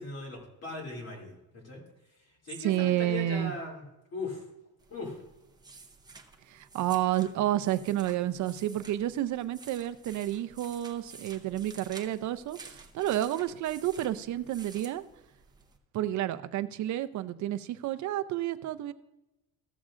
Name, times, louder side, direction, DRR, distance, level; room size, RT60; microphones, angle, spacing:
voice 1, 0.0-1.8 2.4-3.8 4.1-4.4 4.9-5.2, left 3 dB, 40° left, -1 dB, 2.7 m, -38 dB
voice 2, 2.6-3.5 6.5-15.0 15.9-18.9, right 13 dB, 50° right, 11 dB, 0.5 m, -30 dB
sound 1, 4.8-15.8, right 4 dB, 10° right, 0.7 m, -52 dB
15.0 x 7.3 x 2.5 m, 0.94 s
cardioid pair, 150°, 38 cm